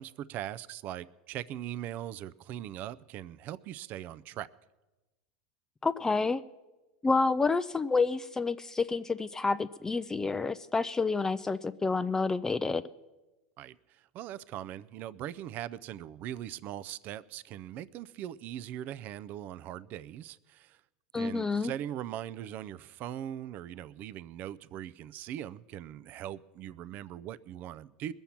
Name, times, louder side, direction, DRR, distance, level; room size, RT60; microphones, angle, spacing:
voice 1, 0.0-4.5 13.6-20.8 21.2-28.1, right 11 dB, 45° right, 0.4 m, -40 dB
voice 2, 5.8-6.4 7.0-12.8 21.1-21.7, left 4 dB, 15° left, 0.3 m, -29 dB
21.0 x 7.1 x 5.8 m
supercardioid pair, 110°, 4 cm